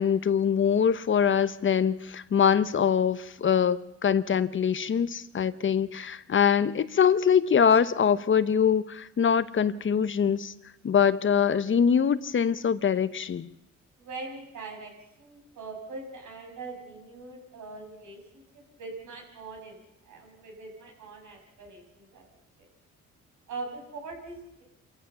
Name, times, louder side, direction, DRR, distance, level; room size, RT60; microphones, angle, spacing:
voice 1, 0.0-10.5 10.8-13.5, left 7 dB, 40° left, 14 dB, 0.9 m, -23 dB
voice 2, 14.0-14.9 15.2-19.8 20.0-22.3 23.5-24.6, right 3 dB, 80° right, 1 dB, 6.2 m, -42 dB
26.5 x 14.0 x 6.9 m, 0.85 s
cardioid pair, 90°, 30 cm